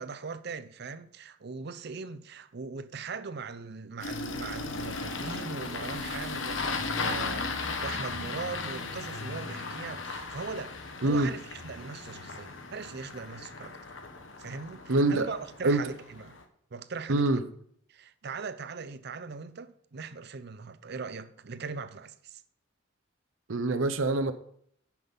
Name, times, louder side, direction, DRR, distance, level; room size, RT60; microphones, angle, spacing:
voice 1, 0.0-13.8 14.4-16.4 16.7-17.4 17.9-22.4, right 4 dB, 55° right, 0.6 m, -40 dB
Engine starting, 4.0-16.4, left 3 dB, 75° left, 1.1 m, -36 dB
voice 2, 14.9-15.3 15.6-15.8 17.1-17.4 23.5-24.3, right 2 dB, 90° right, 0.7 m, -25 dB
9.5 x 6.0 x 5.4 m
head